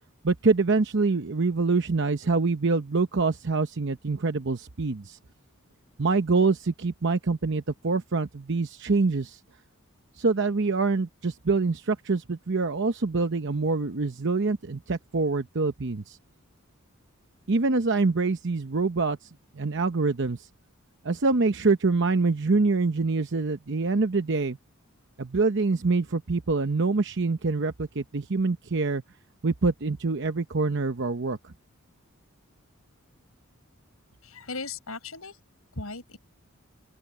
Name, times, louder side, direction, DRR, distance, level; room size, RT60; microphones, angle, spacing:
voice 1, 0.2-5.2 6.0-9.4 10.2-16.2 17.5-19.2 19.5-20.5 21.0-24.6 25.2-29.0 29.4-31.5, right 3 dB, 55° right, 0.8 m, -25 dB
voice 2, 34.2-35.4 35.7-36.2, left 3 dB, 80° left, 5.9 m, -37 dB
open air
head